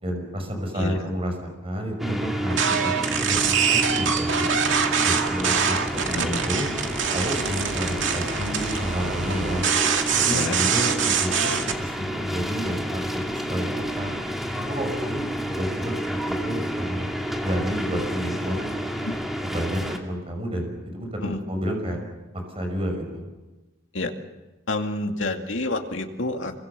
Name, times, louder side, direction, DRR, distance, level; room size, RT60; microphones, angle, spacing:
voice 1, 0.0-4.6 5.0-6.7 7.1-9.6 10.2-14.1 14.5-15.3 15.5-15.9 16.3-17.1 17.4-18.7 19.4-22.0 22.3-23.2, equal, 30° right, 3 dB, 5.9 m, -30 dB
sound 1, 2.0-20.0, equal, ahead, 2.5 m, -30 dB
sound 2, 2.5-11.8, right 7 dB, 70° right, 2.3 m, -24 dB
voice 2, 24.7-26.5, left 2 dB, 75° left, 4 dB, 2.3 m, -28 dB
26.5 x 23.5 x 6.9 m, 1.1 s
head